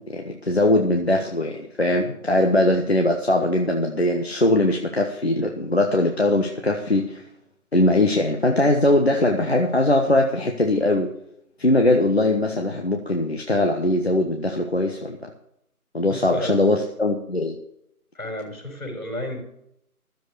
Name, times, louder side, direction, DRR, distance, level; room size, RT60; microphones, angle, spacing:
voice 1, 0.0-7.2 7.7-11.1 11.6-15.2 15.9-17.6, left 1 dB, 45° left, 2 dB, 1.3 m, -21 dB
voice 2, 16.1-16.6 18.1-19.4, left 1 dB, 70° left, 1 dB, 5.8 m, -32 dB
13.0 x 7.7 x 6.7 m, 0.76 s
figure-of-eight pair, 170°, 44 cm